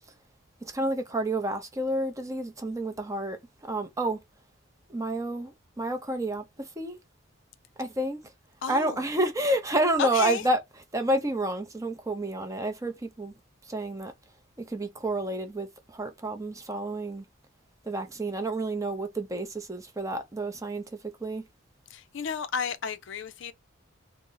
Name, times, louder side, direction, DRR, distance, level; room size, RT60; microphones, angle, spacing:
voice 1, 0.6-3.4 3.7-4.2 4.9-7.0 7.8-8.2 8.7-13.3 13.7-14.1 14.7-17.2 17.9-20.8 21.2-21.4, right 1 dB, 15° right, 0.5 m, -29 dB
voice 2, 8.6-9.0 10.0-10.4 21.9-23.5, left 6 dB, 60° left, 0.4 m, -31 dB
3.8 x 2.0 x 3.8 m
head